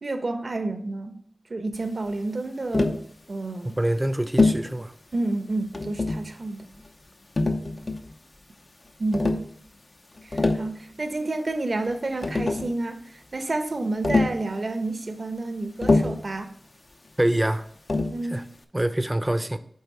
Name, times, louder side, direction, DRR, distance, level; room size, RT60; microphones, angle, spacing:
voice 1, 0.0-1.2 1.5-3.0 3.3-3.8 5.1-6.7 9.0-9.4 10.2-13.0 13.3-16.5 18.1-18.4, right 2 dB, 60° right, 7 dB, 0.9 m, -30 dB
Tap, 2.7-3.1 4.4-4.7 5.7-6.3 7.4-8.1 9.1-9.5 10.2-10.7 11.9-12.0 12.2-12.7 14.0-14.4 15.8-16.3 17.9-18.2, left 2 dB, 50° left, 0.7 m, -23 dB
voice 2, 3.8-4.9 17.2-17.6 18.3-18.4 18.7-19.6, right 1 dB, 20° right, 11 dB, 0.6 m, -25 dB
8.5 x 3.5 x 4.6 m, 0.63 s
cardioid pair, 45°, 0 cm